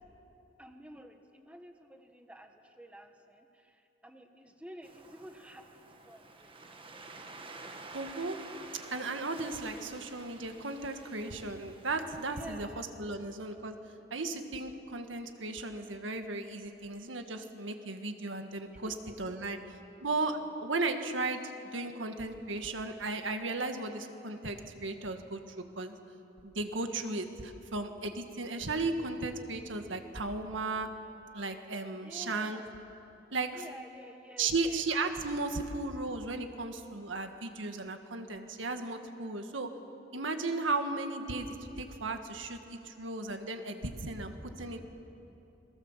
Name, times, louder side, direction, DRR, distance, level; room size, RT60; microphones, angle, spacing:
voice 1, 0.6-6.6 12.3-13.0 18.8-19.6 32.0-32.7 33.5-34.8, right 1 dB, 5° right, 5 dB, 1.4 m, -51 dB
Waves surf, 4.8-12.5, right 3 dB, 30° right, 1.6 m, -50 dB
voice 2, 7.9-8.4 8.9-13.8 14.1-19.6 20.0-26.0 26.4-30.9 31.3-32.6 33.3-33.6 34.4-39.7 40.1-44.9, right 3 dB, 80° right, 6 dB, 1.8 m, -35 dB
28.0 x 22.0 x 7.4 m, 2.9 s
head